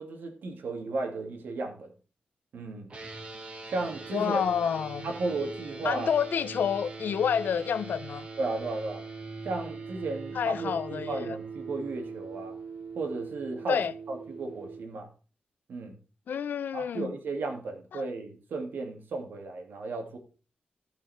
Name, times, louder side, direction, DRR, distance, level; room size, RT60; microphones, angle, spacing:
voice 1, 0.0-1.9 2.5-2.9 3.7-4.4 5.0-6.1 8.4-9.0 9.4-12.6 13.0-13.8 14.1-15.1 15.7-16.0 16.7-20.2, right 3 dB, 90° right, 2.3 m, -34 dB
sound 1, 2.9-14.8, right 4 dB, 40° right, 1.8 m, -41 dB
voice 2, 4.1-5.1 5.8-8.3 10.3-11.4 13.7-13.9 16.3-17.1 17.9-18.1, left 7 dB, 80° left, 0.6 m, -29 dB
14.0 x 5.8 x 4.3 m
wide cardioid pair, 170°, 3 cm